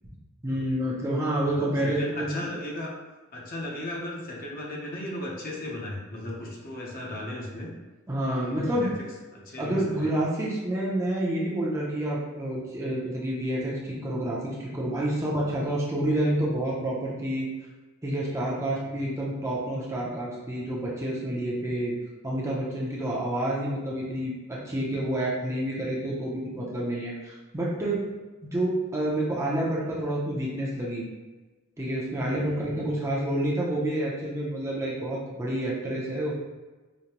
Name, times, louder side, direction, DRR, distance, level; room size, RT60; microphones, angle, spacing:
voice 1, 0.4-2.4 8.1-8.9 9.6-17.5 18.0-21.9 22.2-28.0 28.4-31.1 31.8-36.4, right 1 dB, 15° right, -5 dB, 0.6 m, -28 dB
voice 2, 1.4-3.0 3.3-7.7 8.3-9.1 9.3-10.1 18.8-19.0 32.3-32.9, left 1 dB, 45° left, -3 dB, 0.7 m, -36 dB
5.1 x 2.2 x 2.9 m, 1.2 s
head